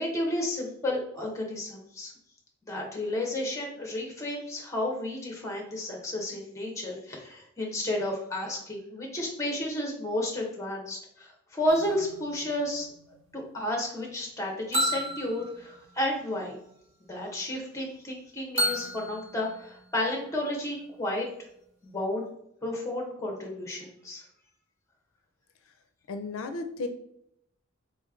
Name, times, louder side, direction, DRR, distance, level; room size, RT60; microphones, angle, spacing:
voice 1, 0.0-2.1 2.7-12.9 13.3-16.6 17.1-21.3 21.8-22.3 22.6-24.2, left 1 dB, 15° left, 0 dB, 1.0 m, -32 dB
sound 1, 11.7-13.7 14.7-16.5 18.6-20.0, equal, 30° right, 0.9 m, -33 dB
voice 2, 26.1-26.9, left 3 dB, 80° left, 7 dB, 0.4 m, -34 dB
4.0 x 3.1 x 3.6 m, 0.75 s
head